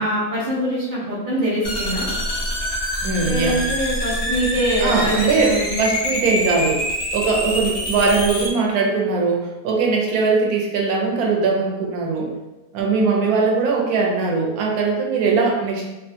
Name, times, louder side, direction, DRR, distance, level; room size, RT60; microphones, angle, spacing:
voice 1, 0.0-2.1 3.2-5.8 12.8-13.3, equal, 45° right, -5 dB, 0.6 m, -24 dB
sound 1, 1.6-8.5, equal, 40° left, 0.5 m, -25 dB
voice 2, 3.0-3.6 4.8-6.8 7.1-12.3 12.7-15.8, right 4 dB, 80° right, 0 dB, 1.1 m, -20 dB
2.7 x 2.4 x 2.5 m, 1.0 s
omnidirectional pair, 1.6 m